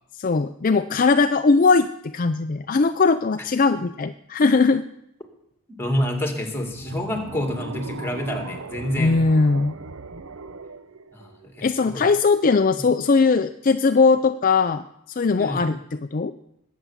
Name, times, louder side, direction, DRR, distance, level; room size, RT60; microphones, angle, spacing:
voice 1, 0.2-4.8 9.0-9.8 11.6-15.8 16.1-16.3, left 4 dB, 40° left, 9 dB, 0.4 m, -19 dB
voice 2, 5.7-9.2 11.1-12.1 15.4-15.7, left 1 dB, 10° left, 4 dB, 2.4 m, -28 dB
sound 1, 6.7-11.9, right 3 dB, 75° right, 0.9 m, -38 dB
20.5 x 8.2 x 7.3 m, 0.81 s
head